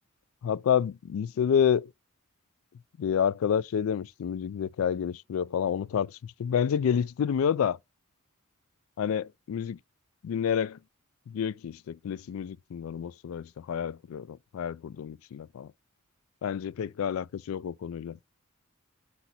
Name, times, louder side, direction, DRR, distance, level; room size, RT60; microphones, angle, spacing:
voice 1, 0.4-1.9 3.0-7.8 9.0-9.8 10.2-10.8 11.3-15.7 16.4-18.2, left 8 dB, 70° left, 0.3 m, -29 dB
8.0 x 2.7 x 5.9 m
head